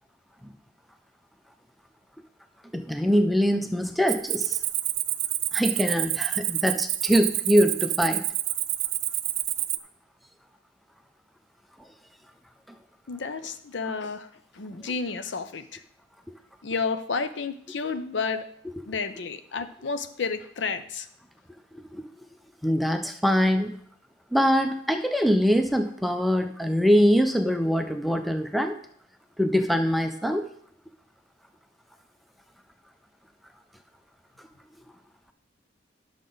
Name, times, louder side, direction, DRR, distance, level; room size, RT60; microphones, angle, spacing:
voice 1, 2.7-4.6 5.5-8.2 21.7-22.0 22.6-23.8 24.3-28.8 29.4-30.5, equal, ahead, 6 dB, 0.4 m, -23 dB
Cricket, 4.1-9.8, right 15 dB, 85° right, 0.5 m, -28 dB
voice 2, 13.1-14.3 14.5-15.8 16.6-18.4 18.9-21.1, left 4 dB, 70° left, 10 dB, 0.6 m, -31 dB
11.0 x 6.4 x 3.9 m, 0.67 s
head